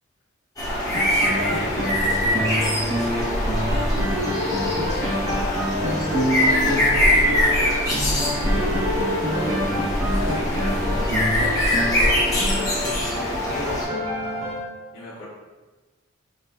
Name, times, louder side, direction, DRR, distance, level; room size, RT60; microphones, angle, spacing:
voice 1, 0.6-4.0 4.9-6.0 6.3-7.9 8.2-9.0 10.0-13.8 14.9-15.2, left 1 dB, 60° left, -10 dB, 0.9 m, -36 dB
sound 1, 0.6-13.8, left 1 dB, 20° left, 0.8 m, -23 dB
sound 2, 0.9-14.6, equal, 85° right, 0.9 m, -27 dB
4.4 x 2.6 x 2.4 m, 1.2 s
head